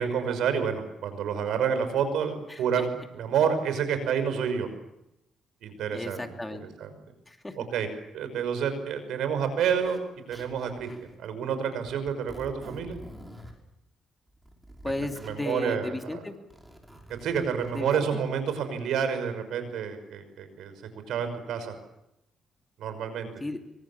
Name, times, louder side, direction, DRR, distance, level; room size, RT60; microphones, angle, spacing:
voice 1, 0.0-4.7 5.6-6.2 6.6-6.9 7.6-7.9 8.1-10.0 10.3-10.9 11.2-13.0 15.2-16.2 17.2-20.7 21.1-21.7 22.8-23.3, right 7 dB, 80° right, 9 dB, 5.8 m, -29 dB
voice 2, 2.5-2.8 5.9-6.6 7.3-7.6 14.8-16.3 17.7-18.2 23.4-23.6, left 2 dB, 15° left, 4 dB, 2.9 m, -34 dB
Zipper (clothing), 9.6-10.0 10.3-11.1 11.8-13.6 14.3-15.3 16.3-17.8, right 1 dB, 10° right, 5.8 m, -47 dB
26.0 x 24.5 x 7.3 m, 0.85 s
cardioid pair, 90°, 0 cm